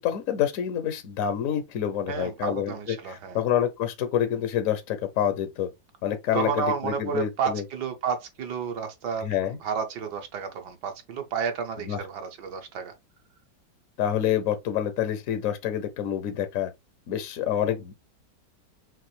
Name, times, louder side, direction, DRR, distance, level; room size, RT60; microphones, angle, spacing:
voice 1, 0.0-2.7 3.0-5.7 6.0-7.6 9.2-9.6 11.9-12.0 14.0-16.7 17.1-18.0, left 10 dB, 65° left, 0.8 m, -27 dB
voice 2, 2.1-3.4 6.3-12.9, right 6 dB, 70° right, 1.4 m, -31 dB
5.8 x 2.6 x 3.1 m
omnidirectional pair, 2.0 m